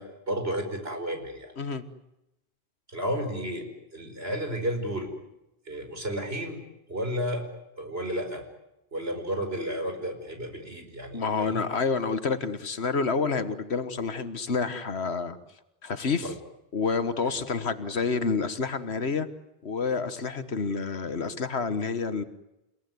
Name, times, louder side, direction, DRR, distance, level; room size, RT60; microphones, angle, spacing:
voice 1, 0.0-1.5 2.9-3.7 3.9-5.1 5.7-6.6 6.9-7.5 7.8-8.4 8.9-11.6 16.2-16.4 17.3-17.4, equal, 70° right, 6 dB, 5.5 m, -32 dB
voice 2, 11.1-15.4 15.8-16.3 16.7-19.3 19.6-22.2, left 4 dB, 85° left, 11 dB, 1.8 m, -28 dB
29.5 x 18.0 x 9.5 m, 0.90 s
omnidirectional pair, 1.1 m